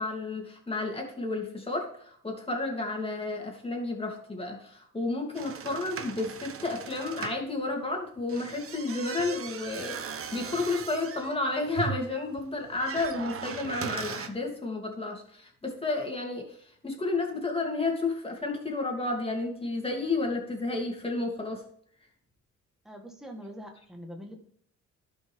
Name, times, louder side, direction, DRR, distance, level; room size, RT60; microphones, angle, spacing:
voice 1, 0.0-10.0 10.3-16.6 16.8-21.6, left 3 dB, 20° left, 0 dB, 2.9 m, -31 dB
sound 1, 5.3-7.4 8.2-14.3, right 6 dB, 45° right, 1.0 m, -39 dB
voice 2, 22.8-24.4, equal, ahead, 2 dB, 1.5 m, -43 dB
12.0 x 5.7 x 3.6 m, 0.63 s
cardioid pair, 90°, 30 cm